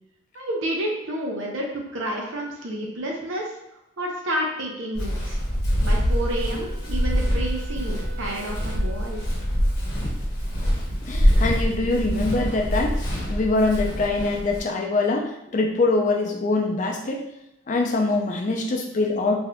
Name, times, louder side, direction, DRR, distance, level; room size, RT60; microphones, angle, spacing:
voice 1, 0.3-3.5 4.0-5.4 5.8-9.2, right 1 dB, 85° right, 0 dB, 0.6 m, -30 dB
Walk footsteps, 4.9-14.6, equal, 55° left, 0.8 m, -25 dB
Wind instrument woodwind instrument, 5.6-9.7, right 7 dB, 45° right, 0.9 m, -46 dB
voice 2, 11.1-17.3 17.7-19.4, left 2 dB, 40° left, 2 dB, 0.4 m, -24 dB
3.5 x 2.6 x 2.2 m, 0.83 s
head